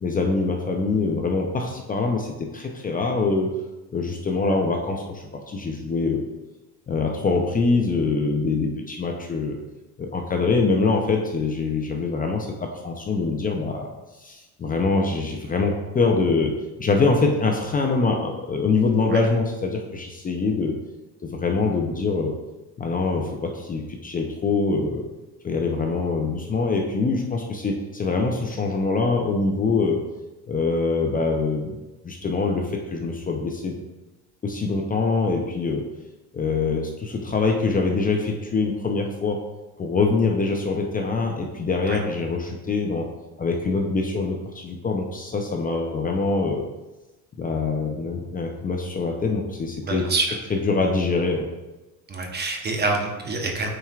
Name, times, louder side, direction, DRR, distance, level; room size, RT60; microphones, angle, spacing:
voice 1, 0.0-3.5 3.9-6.2 6.9-9.6 10.0-13.9 14.2-20.8 21.2-22.3 22.8-25.0 25.4-30.0 30.5-31.7 32.0-33.8 34.4-35.9 36.3-39.4 39.8-43.1 43.4-46.7 47.4-50.1 50.5-51.5, left 3 dB, 25° left, 1 dB, 0.6 m, -24 dB
voice 2, 49.8-50.3 52.1-53.7, right 3 dB, 30° right, 2 dB, 0.9 m, -26 dB
9.0 x 4.5 x 2.4 m, 1.1 s
cardioid pair, 115°, 36 cm